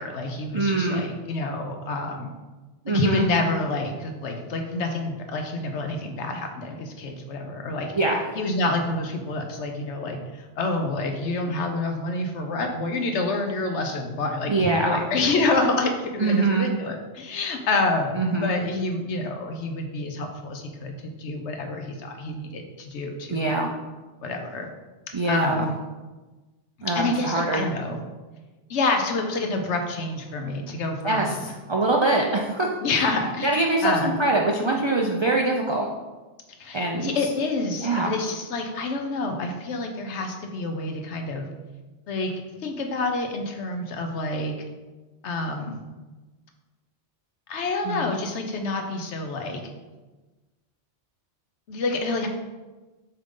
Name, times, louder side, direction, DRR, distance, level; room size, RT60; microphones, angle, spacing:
voice 1, 0.0-2.3 2.9-8.0 8.4-23.6 24.2-24.7 25.3-25.7 26.9-28.0 28.7-31.4 32.8-33.5 33.8-34.2 36.6-41.5 42.1-44.5 45.2-45.8 47.5-49.6 51.7-52.3, left 2 dB, 75° left, 4 dB, 1.1 m, -28 dB
voice 2, 0.5-1.0 2.8-3.2 8.0-8.2 14.5-15.0 16.2-16.7 18.2-18.5 23.3-23.7 25.1-25.7 26.8-27.6 31.0-32.7 33.0-33.1 33.4-35.9 36.7-37.1 37.8-38.2 47.8-48.1, right 2 dB, 50° right, 0 dB, 0.3 m, -23 dB
7.1 x 3.8 x 3.7 m, 1.2 s
omnidirectional pair, 1.2 m